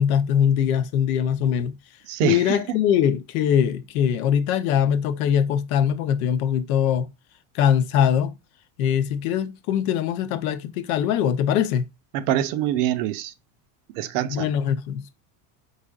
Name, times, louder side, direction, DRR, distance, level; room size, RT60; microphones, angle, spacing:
voice 1, 0.0-1.8 2.2-7.1 7.5-8.3 8.8-11.9 14.3-15.2, left 9 dB, 75° left, 0.8 m, -22 dB
voice 2, 2.1-2.6 12.1-13.3 13.9-14.5, right 12 dB, 60° right, 0.6 m, -25 dB
4.9 x 4.1 x 2.3 m
cardioid pair, 165°, 43 cm